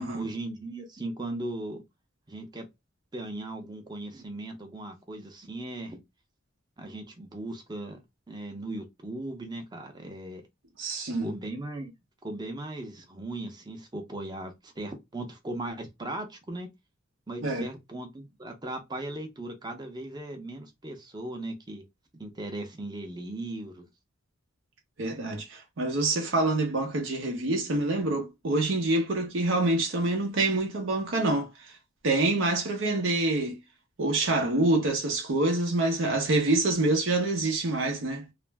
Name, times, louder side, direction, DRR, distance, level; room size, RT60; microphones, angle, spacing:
voice 1, 0.1-1.8 2.3-2.7 3.1-6.0 6.8-8.0 8.3-10.4 11.2-11.9 12.2-16.7 17.3-21.8 22.2-23.9, right 1 dB, 20° right, 0.6 m, -38 dB
voice 2, 10.8-11.3 17.4-17.7 25.0-31.5 32.0-33.6 34.0-38.3, right 2 dB, 70° right, 0.7 m, -26 dB
2.5 x 2.0 x 3.3 m
head